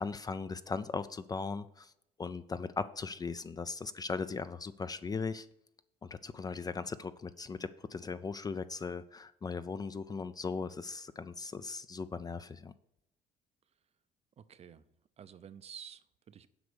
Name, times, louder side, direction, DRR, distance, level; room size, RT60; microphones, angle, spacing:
voice 1, 0.0-1.9 2.2-5.5 6.0-12.7, left 4 dB, 25° left, 13 dB, 0.4 m, -38 dB
voice 2, 14.4-14.9 15.2-16.5, right 8 dB, 40° right, 14 dB, 0.5 m, -51 dB
7.9 x 5.2 x 6.8 m, 0.81 s
cardioid pair, 110°, 17 cm